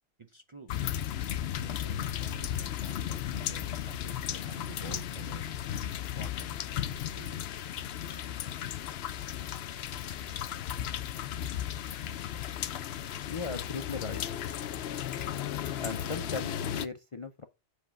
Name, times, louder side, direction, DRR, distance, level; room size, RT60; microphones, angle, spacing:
voice 1, 0.2-0.9 1.6-5.6 6.1-7.7, right 3 dB, 35° right, 0.5 m, -50 dB
sound 1, 0.7-16.9, left 10 dB, 65° left, 0.8 m, -35 dB
voice 2, 13.3-14.2 15.8-17.4, left 4 dB, 40° left, 0.5 m, -37 dB
7.5 x 3.5 x 5.6 m
omnidirectional pair, 1.2 m